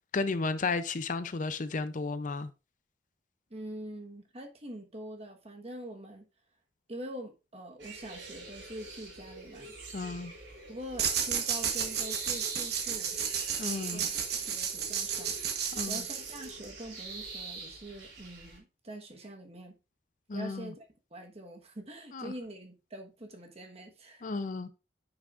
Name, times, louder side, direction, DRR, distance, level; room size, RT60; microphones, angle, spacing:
voice 1, 0.1-2.5 9.9-10.3 13.6-14.1 15.7-16.0 20.3-20.7 22.1-22.3 24.2-24.7, left 3 dB, 45° left, 0.5 m, -33 dB
voice 2, 3.5-6.3 6.9-9.8 10.7-13.2 13.6-14.2 14.5-15.3 15.9-19.7 20.3-24.3, right 1 dB, 35° right, 1.3 m, -44 dB
sound 1, 7.8-18.6, right 3 dB, 80° right, 3.3 m, -46 dB
sound 2, 11.0-16.7, right 7 dB, 60° right, 1.3 m, -32 dB
9.5 x 5.9 x 2.5 m
head